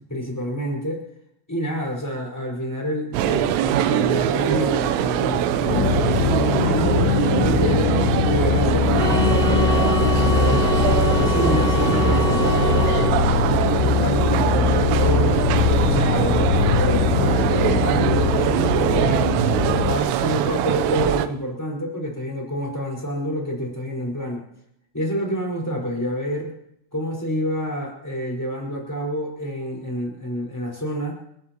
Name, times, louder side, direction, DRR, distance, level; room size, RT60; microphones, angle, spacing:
voice 1, 0.1-1.0 1.5-7.9 8.2-10.6 11.0-15.4 15.8-19.3 19.7-24.4 24.9-26.5 26.9-31.1, equal, 5° left, -2 dB, 4.2 m, -28 dB
sound 1, 3.1-21.3, right 11 dB, 85° right, 3.5 m, -22 dB
sound 2, 5.7-20.0, left 9 dB, 80° left, 3.1 m, -22 dB
sound 3, 8.9-13.1, right 1 dB, 30° right, 6.0 m, -27 dB
29.5 x 14.5 x 3.0 m, 0.73 s
omnidirectional pair, 5.7 m